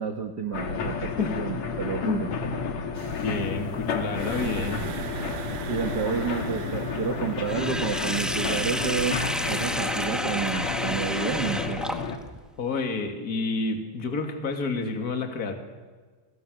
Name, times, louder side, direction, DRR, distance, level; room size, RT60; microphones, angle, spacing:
voice 1, 0.0-2.3 5.7-9.2 9.5-11.8, right 6 dB, 45° right, 5 dB, 1.5 m, -30 dB
sound 1, 0.5-12.2, left 5 dB, 65° left, 3.0 m, -31 dB
sound 2, 3.0-9.2, right 8 dB, 75° right, 2.6 m, -40 dB
voice 2, 3.2-4.9 12.6-15.5, left 4 dB, 30° left, 4 dB, 2.8 m, -29 dB
Sink (filling or washing), 7.5-12.4, equal, ahead, 0.4 m, -30 dB
29.5 x 24.5 x 6.7 m, 1.4 s
omnidirectional pair, 3.5 m